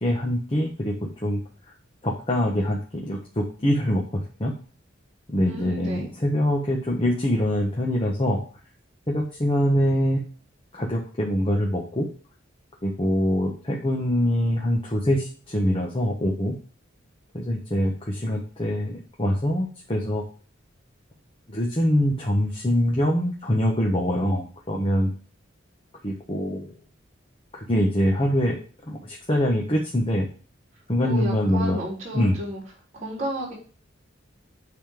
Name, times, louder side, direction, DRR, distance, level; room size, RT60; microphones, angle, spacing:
voice 1, 0.0-0.9 1.2-1.4 2.0-4.5 5.3-8.4 9.1-10.2 10.7-12.1 12.8-16.5 17.3-20.2 21.5-25.1 26.0-26.7 27.7-28.6 28.9-30.3 30.9-31.8 32.1-32.4, equal, 30° left, -2 dB, 1.4 m, -24 dB
voice 2, 5.4-6.1 31.0-32.6 32.9-33.5, equal, 35° right, -4 dB, 3.8 m, -32 dB
9.2 x 4.2 x 5.2 m, 0.40 s
head